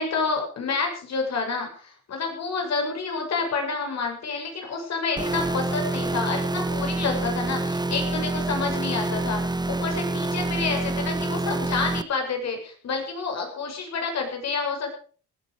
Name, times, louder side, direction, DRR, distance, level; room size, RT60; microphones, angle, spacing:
voice 1, 0.0-15.0, left 4 dB, 60° left, 3 dB, 7.2 m, -29 dB
sound 1, 5.2-12.0, right 2 dB, 15° right, 1.1 m, -27 dB
19.0 x 13.0 x 5.1 m, 0.41 s
cardioid pair, 90°, 30 cm